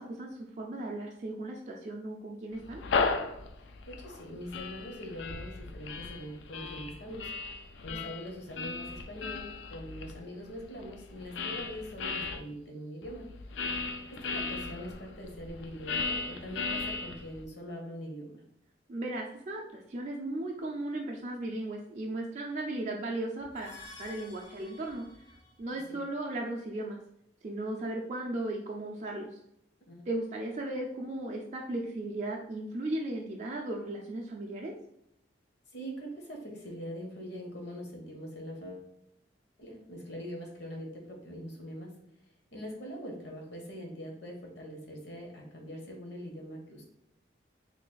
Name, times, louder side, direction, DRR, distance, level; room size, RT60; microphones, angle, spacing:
voice 1, 0.0-2.8 18.9-23.7 24.0-25.0 25.6-27.0 27.4-29.4 30.1-34.7, right 1 dB, 40° right, -1 dB, 0.4 m, -36 dB
sound 1, 2.6-12.4 13.0-17.4, left 4 dB, 85° left, 0.4 m, -36 dB
voice 2, 3.6-7.3 7.8-13.3 14.1-18.4 25.7-26.0 29.9-30.1 35.7-38.9 39.6-41.9 42.5-46.8, equal, 70° left, 1 dB, 1.0 m, -43 dB
sound 2, 23.4-25.7, left 3 dB, 20° left, 0.5 m, -50 dB
3.2 x 2.4 x 3.8 m, 0.75 s
head